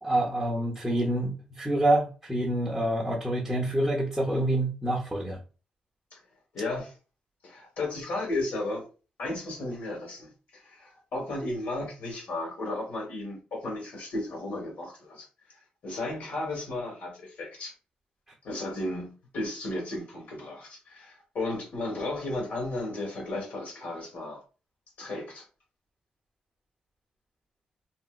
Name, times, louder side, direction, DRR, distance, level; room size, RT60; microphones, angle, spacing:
voice 1, 0.0-5.4, right 1 dB, 5° right, 0.8 m, -27 dB
voice 2, 6.5-6.9 7.4-8.8 9.2-17.7 18.4-24.4 25.0-25.4, left 2 dB, 70° left, 1.5 m, -34 dB
4.1 x 2.1 x 2.3 m
cardioid pair, 135°, 3 cm